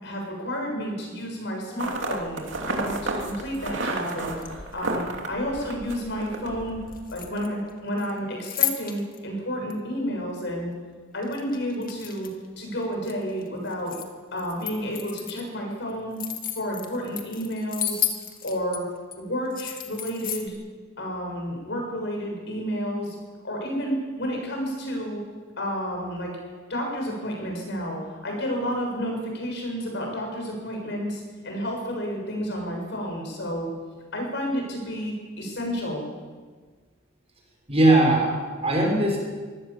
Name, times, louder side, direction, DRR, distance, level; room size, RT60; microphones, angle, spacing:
voice 1, 0.0-6.8 7.1-10.7 11.1-12.3 12.6-13.9 14.3-16.2 16.5-18.0 18.4-18.8 19.2-20.5 21.0-23.2 23.4-25.2 25.6-26.3 26.7-33.7 34.1-36.1, equal, 65° left, 1 dB, 7.6 m, -31 dB
sound 1, 1.8-7.1, right 2 dB, 65° right, 3.1 m, -32 dB
sound 2, 4.3-5.0 6.9-7.7 8.0-9.2 9.7-9.8 11.2-12.5 12.8-14.1 14.4-15.5 15.9-18.8 19.1-19.2 19.5-20.5, left 11 dB, 45° left, 2.2 m, -32 dB
voice 2, 37.7-39.2, right 1 dB, 30° right, 0 dB, 6.5 m, -20 dB
24.0 x 17.0 x 7.4 m, 1.5 s
head